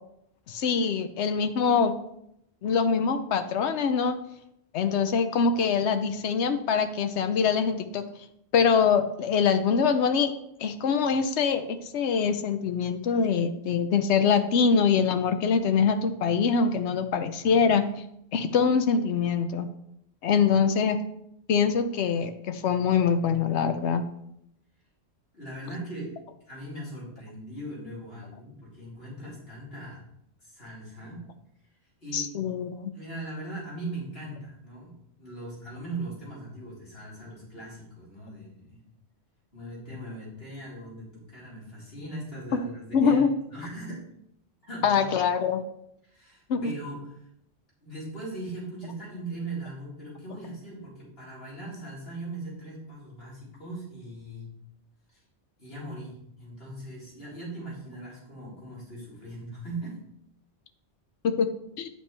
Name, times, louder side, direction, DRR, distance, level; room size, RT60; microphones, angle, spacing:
voice 1, 0.5-1.9 2.6-4.1 4.7-8.0 8.5-10.3 10.6-17.8 18.3-19.7 20.2-21.0 21.5-24.0 32.1-32.9 42.9-43.3 44.8-45.6 46.5-46.7 61.2-61.5 61.8-61.9, left 6 dB, 80° left, 8 dB, 1.0 m, -24 dB
voice 2, 25.3-26.1 26.5-30.0 30.4-31.2 32.0-32.3 32.9-38.8 39.5-43.2 43.5-44.0 44.6-45.1 46.0-47.3 47.8-54.5 55.1-55.2 55.6-60.0, right 1 dB, 60° left, -7 dB, 4.3 m, -39 dB
9.8 x 8.1 x 3.3 m, 0.75 s
omnidirectional pair, 1.1 m